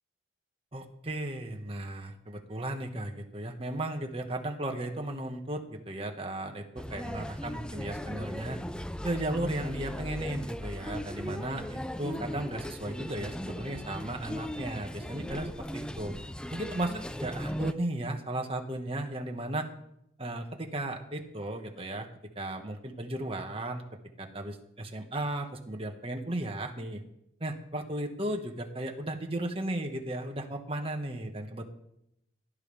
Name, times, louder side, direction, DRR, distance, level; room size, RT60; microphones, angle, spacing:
voice 1, 0.7-8.6 9.0-16.1 16.5-19.7 20.2-22.1 22.3-23.8 24.2-27.0 27.4-31.7, right 1 dB, 30° right, 3 dB, 1.6 m, -35 dB
sound 1, 6.8-17.7, equal, 5° left, 0.4 m, -38 dB
18.0 x 11.5 x 3.5 m, 0.78 s
head